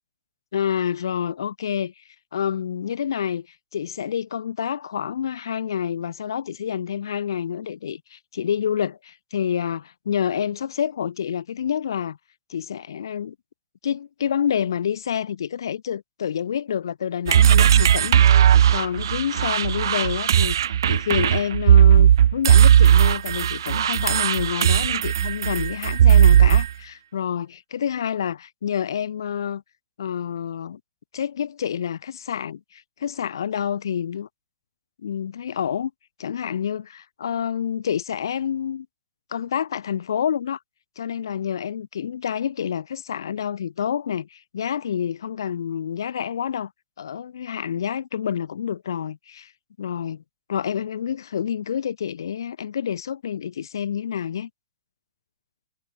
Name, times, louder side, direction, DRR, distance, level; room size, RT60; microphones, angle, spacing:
voice 1, 0.5-1.9 2.3-3.5 3.7-12.2 12.5-13.3 13.8-18.4 18.7-20.6 20.9-29.6 30.0-30.8 31.1-34.3 35.0-35.9 36.2-38.9 39.3-40.6 41.0-46.7 47.0-49.5 49.8-50.2 50.5-54.5, left 8 dB, 75° left, 4.7 m, -28 dB
sound 1, 17.3-26.7, right 10 dB, 75° right, 0.3 m, -16 dB
hypercardioid pair, 145°, 2 cm